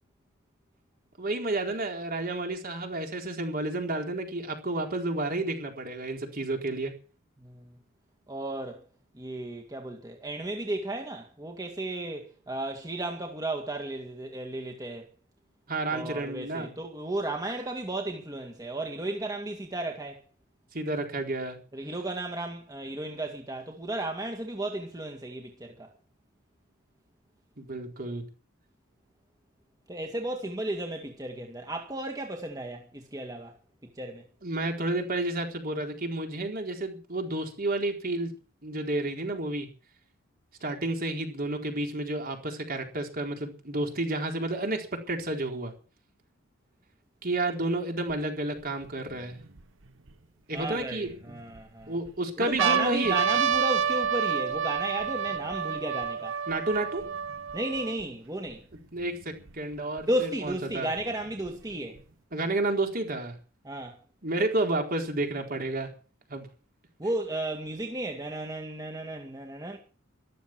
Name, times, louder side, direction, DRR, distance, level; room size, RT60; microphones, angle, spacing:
voice 1, 1.2-6.9 15.7-16.7 20.7-21.6 27.6-28.2 34.4-38.3 38.6-39.7 40.6-45.7 47.2-49.4 50.5-51.4 51.9-53.1 56.5-57.0 58.9-60.9 62.3-63.4 64.2-65.9 66.3-66.5, right 2 dB, 45° right, 4.2 m, -31 dB
voice 2, 8.3-8.9 9.1-15.1 15.9-20.2 21.7-25.9 29.9-33.6 33.8-34.2 50.5-51.9 52.4-56.4 57.5-58.6 60.1-62.0 63.6-64.0 67.0-69.8, right 1 dB, 20° right, 2.1 m, -34 dB
sound 1, 48.1-48.2 48.8-50.1 50.8-51.6 52.1-52.2 52.4-58.0 58.7-58.8 59.0-60.0 61.0-62.0, right 7 dB, 65° right, 1.2 m, -29 dB
14.0 x 13.0 x 6.2 m
head